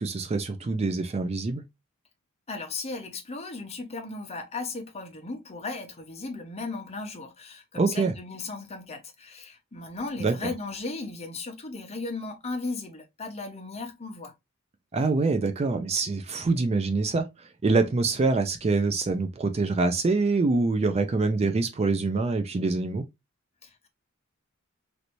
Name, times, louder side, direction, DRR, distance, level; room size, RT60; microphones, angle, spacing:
voice 1, 0.0-1.6 7.8-8.1 10.2-10.3 14.9-17.3 17.6-23.0, right 3 dB, 30° right, 0.4 m, -25 dB
voice 2, 2.5-14.3 23.6-23.9, left 3 dB, 30° left, 0.8 m, -36 dB
3.2 x 2.7 x 2.9 m
head